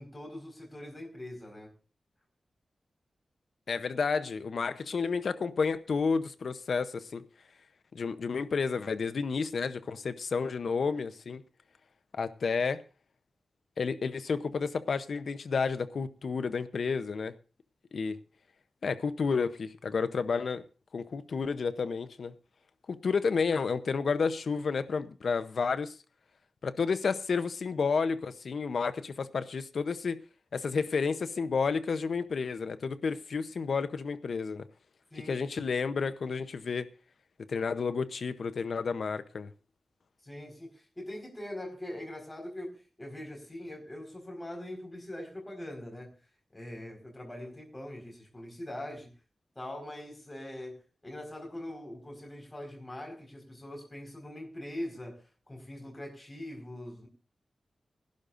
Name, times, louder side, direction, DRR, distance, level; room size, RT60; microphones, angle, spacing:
voice 1, 0.0-1.7 35.1-35.4 40.2-46.1 46.5-49.1 49.5-57.1, left 1 dB, 15° left, 4.5 m, -42 dB
voice 2, 3.7-7.2 7.9-11.4 12.1-12.8 13.8-17.3 17.9-18.2 18.8-20.6 20.9-22.3 22.9-26.0 26.6-30.2 30.5-34.7 35.3-36.9 37.5-39.5, left 5 dB, 70° left, 0.7 m, -31 dB
21.5 x 11.5 x 2.5 m
wide cardioid pair, 120°, 0 cm